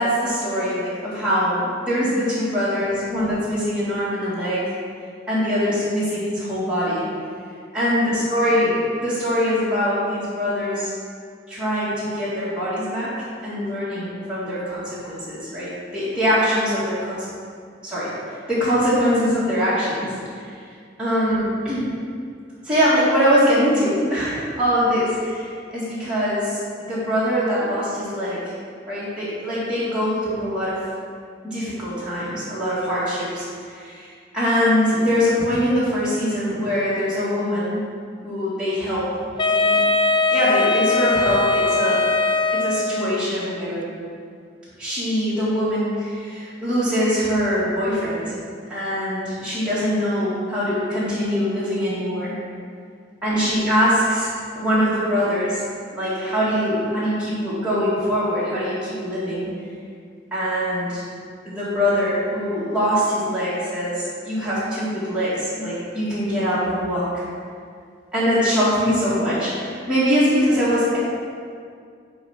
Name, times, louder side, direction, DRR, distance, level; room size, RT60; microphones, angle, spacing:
voice 1, 0.0-4.6 5.3-7.1 7.7-8.0 8.3-10.9 11.5-13.1 13.4-17.3 17.8-20.5 21.0-21.9 22.6-25.5 25.7-28.4 28.9-30.8 31.4-37.8 38.2-39.1 39.5-39.8 40.3-42.1 42.6-43.9 44.8-48.3 48.7-52.3 53.2-55.6 55.9-59.5 60.3-61.0 61.4-67.2 68.1-71.0, equal, 5° right, -12 dB, 1.8 m, -23 dB
Wind instrument woodwind instrument, 39.4-43.3, left 3 dB, 25° left, 0.4 m, -20 dB
8.9 x 3.3 x 5.8 m, 2.2 s
head